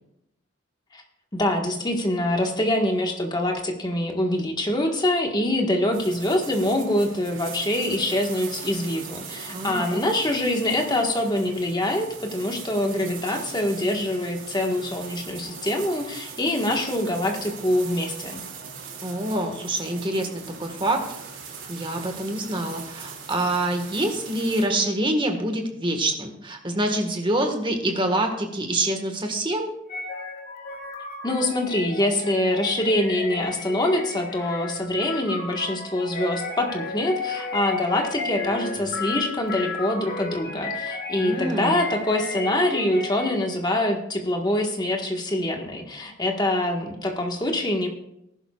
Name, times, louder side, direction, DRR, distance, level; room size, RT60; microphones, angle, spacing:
voice 1, 1.3-18.4 31.2-47.9, left 1 dB, 20° left, 2 dB, 1.5 m, -25 dB
sound 1, 5.9-24.7, right 5 dB, 70° right, 2.6 m, -40 dB
voice 2, 9.5-10.0 19.0-21.0 21.7-29.7 41.2-41.8, right 1 dB, 25° right, 4 dB, 1.6 m, -26 dB
sound 2, 29.9-43.5, left 3 dB, 50° left, 1.8 m, -33 dB
19.0 x 11.0 x 2.4 m, 0.82 s
head